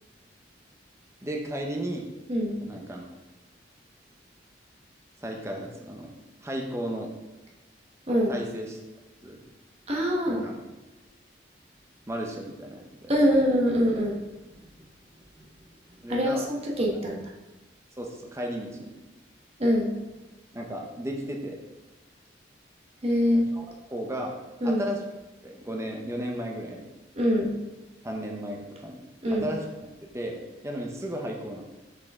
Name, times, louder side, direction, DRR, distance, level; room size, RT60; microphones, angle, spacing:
voice 1, 1.2-2.1 2.6-3.1 5.2-6.1 6.4-7.1 8.3-8.8 9.2-9.4 10.2-10.6 12.1-13.4 16.0-16.5 16.9-17.0 18.0-19.0 20.5-21.6 23.3-24.4 24.6-25.0 25.4-26.8 28.0-29.0 29.3-31.8, equal, 15° right, 1 dB, 0.7 m, -35 dB
voice 2, 9.9-10.4 13.1-14.2 16.1-17.2 19.6-19.9 23.0-23.4 24.6-24.8 27.2-27.5 29.2-29.5, equal, 35° right, -1 dB, 1.2 m, -24 dB
6.4 x 5.4 x 3.5 m, 1.1 s
head